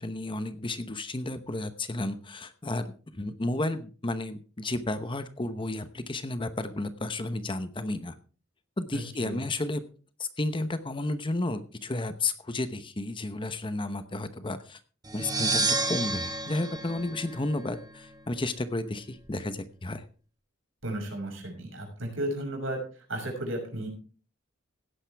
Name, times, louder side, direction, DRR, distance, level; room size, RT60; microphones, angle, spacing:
voice 1, 0.0-8.1 8.8-9.8 10.2-14.8 15.1-20.0, left 2 dB, 25° left, 11 dB, 0.9 m, -32 dB
voice 2, 8.9-9.4 20.8-22.8 23.1-23.9, right 1 dB, 75° right, 2 dB, 6.0 m, -34 dB
sound 1, 15.0-17.9, right 3 dB, 20° right, 1.6 m, -30 dB
16.5 x 10.5 x 3.4 m, 0.38 s
head